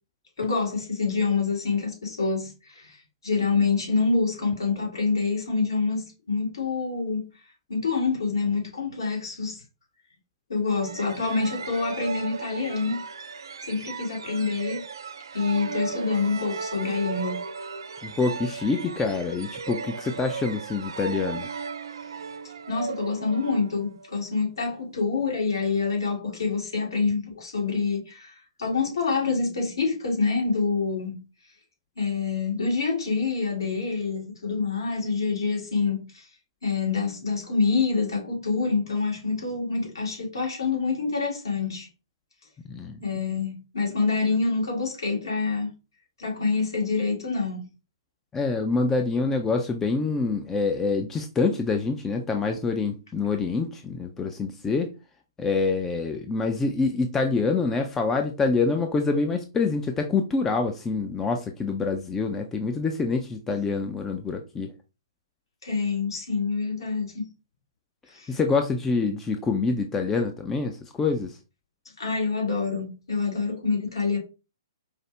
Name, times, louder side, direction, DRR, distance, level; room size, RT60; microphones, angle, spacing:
voice 1, 0.4-3.0 3.2-7.3 7.7-9.6 10.5-13.0 13.6-14.8 15.3-17.4 22.7-31.2 32.0-36.3 36.6-41.9 43.0-45.7 46.2-47.7 65.6-67.3 68.1-68.3 72.0-74.2, left 4 dB, 65° left, 2.0 m, -26 dB
sound 1, 10.8-24.3, right 5 dB, 65° right, 0.3 m, -36 dB
voice 2, 18.0-21.5 42.7-43.0 48.3-54.9 55.4-64.7 68.3-71.4, left 4 dB, 10° left, 0.4 m, -26 dB
4.8 x 2.1 x 3.2 m
figure-of-eight pair, 120°, 2 cm